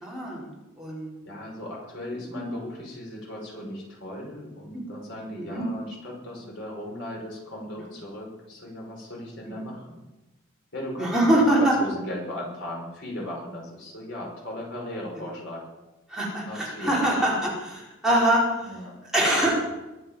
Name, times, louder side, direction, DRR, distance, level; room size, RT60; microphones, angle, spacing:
voice 1, 0.0-0.5 0.8-1.1 4.7-4.8 5.4-5.7 9.6-9.7 11.0-11.7 16.1-18.7 19.1-19.6, right 1 dB, 5° right, -6 dB, 4.6 m, -23 dB
voice 2, 1.3-10.0 10.7-15.7 16.4-17.0 18.6-19.0, left 1 dB, 65° left, -2 dB, 5.7 m, -37 dB
22.5 x 7.7 x 7.4 m, 1.0 s
head